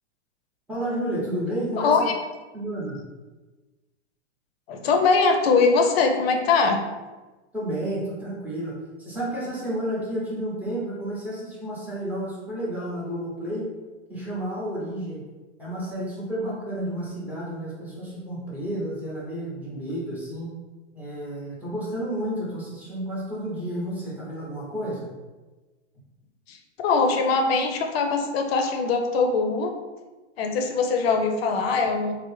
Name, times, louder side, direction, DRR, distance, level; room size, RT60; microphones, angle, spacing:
voice 1, 0.7-2.1 2.5-3.0 7.5-13.7 14.1-15.2 15.6-20.5 20.9-25.1, right 1 dB, 5° right, -7 dB, 0.7 m, -31 dB
voice 2, 1.8-2.1 4.7-6.8 26.5-26.6 26.8-29.7 30.4-32.1, left 4 dB, 55° left, 4 dB, 0.6 m, -22 dB
3.3 x 2.0 x 3.0 m, 1.2 s
hypercardioid pair, 140°, 36 cm